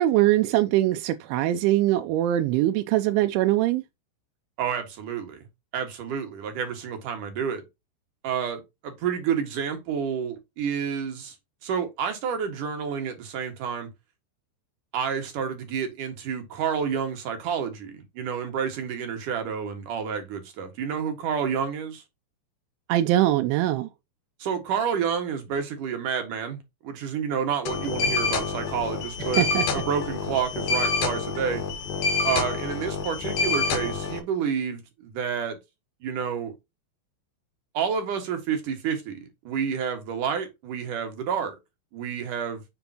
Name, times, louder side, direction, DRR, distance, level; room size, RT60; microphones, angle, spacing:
voice 1, 0.0-3.8 22.9-23.9 29.2-29.7, right 14 dB, 85° right, 3.1 m, -22 dB
voice 2, 4.6-5.5 5.7-7.6 8.2-11.3 11.6-13.9 14.9-22.0 24.4-29.5 29.7-31.6 32.2-35.6 36.0-36.5 37.7-41.6 41.9-42.6, right 7 dB, 55° right, 2.9 m, -29 dB
sound 1, 27.7-34.2, left 4 dB, 60° left, 3.2 m, -27 dB
7.1 x 6.9 x 2.9 m
omnidirectional pair, 5.3 m